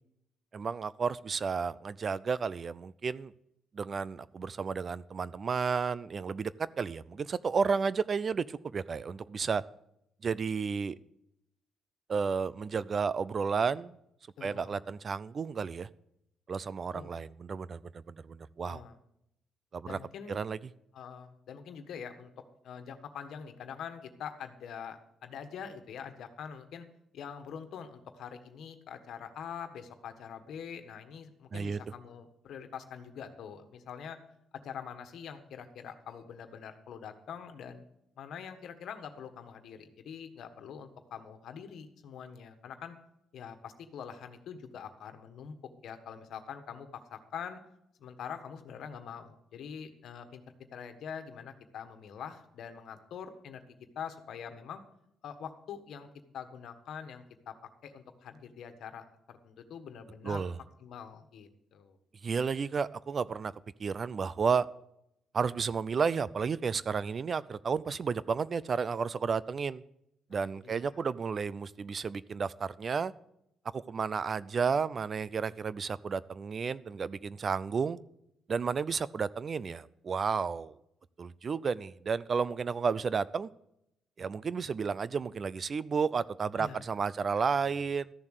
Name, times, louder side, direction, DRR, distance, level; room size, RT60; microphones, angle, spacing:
voice 1, 0.5-3.3 3.7-9.6 10.2-11.0 12.1-14.0 14.4-15.9 16.5-17.8 18.1-18.8 19.7-20.0 20.3-20.6 31.5-31.8 60.2-60.6 62.2-63.5 63.8-64.7 65.3-69.8 70.3-73.1 73.7-78.0 78.5-80.7 81.2-83.5 84.2-88.1, right 5 dB, 45° right, 19 dB, 0.5 m, -32 dB
voice 2, 14.4-14.8 16.9-17.1 18.6-19.0 19.8-20.4 20.9-22.3 22.6-26.9 27.1-34.2 34.5-37.8 38.2-43.0 43.3-45.5 45.8-47.6 48.0-50.4 50.7-53.6 53.9-54.8 55.2-56.1 56.3-57.6 57.8-60.4 60.8-62.0 70.3-70.9 86.6-86.8 87.2-87.8, left 7 dB, 70° left, 8 dB, 1.4 m, -44 dB
13.5 x 7.1 x 6.6 m, 0.79 s
cardioid pair, 90°, 0 cm